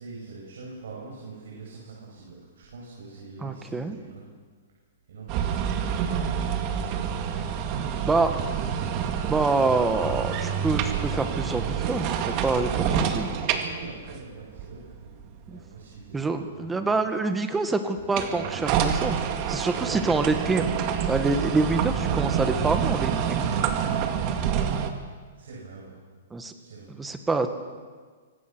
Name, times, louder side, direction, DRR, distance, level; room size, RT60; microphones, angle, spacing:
voice 1, 0.0-4.3 5.1-5.7 13.4-15.2 15.4-17.0 25.3-26.0 26.6-26.9, right 4 dB, 75° right, -4 dB, 7.9 m, -43 dB
voice 2, 3.4-4.0 8.0-8.3 9.3-13.3 15.5-15.6 16.1-19.2 19.5-20.7 21.1-23.5 26.3-26.5 26.9-27.5, right 3 dB, 10° right, 7 dB, 1.7 m, -26 dB
sound 1, 5.3-15.6 18.0-24.9, right 8 dB, 35° right, 2.2 m, -27 dB
25.0 x 18.5 x 6.3 m, 1.5 s
hypercardioid pair, 150°, 0 cm